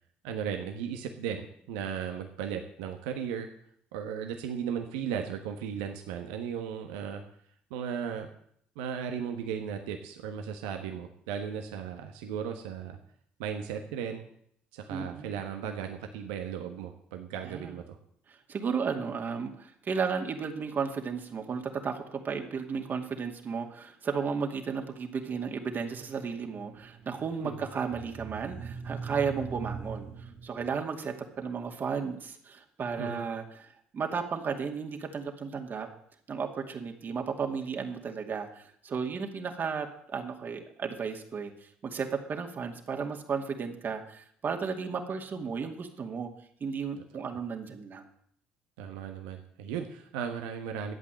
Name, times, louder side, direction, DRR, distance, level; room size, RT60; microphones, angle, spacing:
voice 1, 0.2-3.5 3.9-7.2 7.7-8.3 8.7-13.0 13.4-14.2 14.7-18.0 27.4-27.7 33.0-33.2 47.1-47.2 48.8-50.9, right 8 dB, 80° right, 5 dB, 1.3 m, -36 dB
voice 2, 14.9-15.3 17.4-17.7 18.3-35.9 36.3-46.3 46.6-48.1, right 5 dB, 45° right, 4 dB, 2.3 m, -34 dB
sound 1, 25.7-30.9, right 5 dB, 65° right, 1.7 m, -42 dB
12.5 x 8.4 x 7.7 m, 0.65 s
hypercardioid pair, 55°, 5 cm